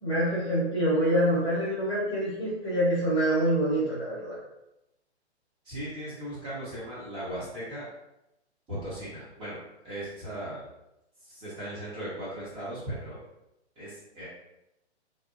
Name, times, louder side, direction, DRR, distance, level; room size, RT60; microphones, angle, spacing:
voice 1, 0.0-4.4, right 1 dB, 15° left, -8 dB, 0.8 m, -26 dB
voice 2, 5.6-7.9 8.7-9.6 9.8-10.7 11.2-13.2 13.8-14.3, right 1 dB, 15° right, -9 dB, 0.9 m, -37 dB
2.4 x 2.0 x 2.4 m, 0.89 s
figure-of-eight pair, 125°, 34 cm